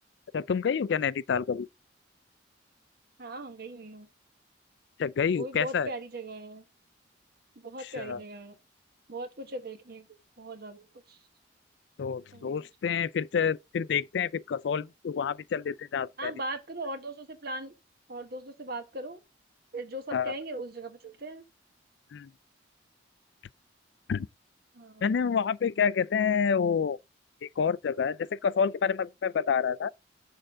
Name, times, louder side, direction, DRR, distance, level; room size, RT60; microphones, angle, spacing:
voice 1, 0.3-1.7 5.0-5.9 8.0-8.2 12.0-16.3 20.1-20.3 22.1-22.3 24.1-24.3 25.0-27.0 27.4-29.9, left 6 dB, 65° left, 0.3 m, -28 dB
voice 2, 3.2-4.1 5.3-6.6 7.5-8.6 9.1-10.1 10.4-11.2 12.3-12.6 16.2-17.7 18.1-19.2 19.7-21.4 24.7-25.3, right 2 dB, 55° right, 1.3 m, -39 dB
6.6 x 3.7 x 6.3 m
head